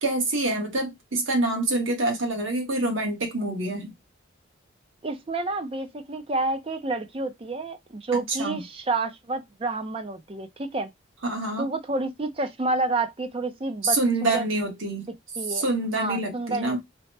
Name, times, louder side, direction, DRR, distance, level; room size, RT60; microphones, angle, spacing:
voice 1, 0.0-3.9 8.3-8.6 11.2-11.7 13.8-15.1 15.5-16.8, right 2 dB, 75° right, 1.0 m, -26 dB
voice 2, 5.0-10.9 11.6-14.5 15.4-15.6 15.9-16.8, right 2 dB, 25° right, 0.4 m, -29 dB
2.8 x 2.1 x 3.1 m
head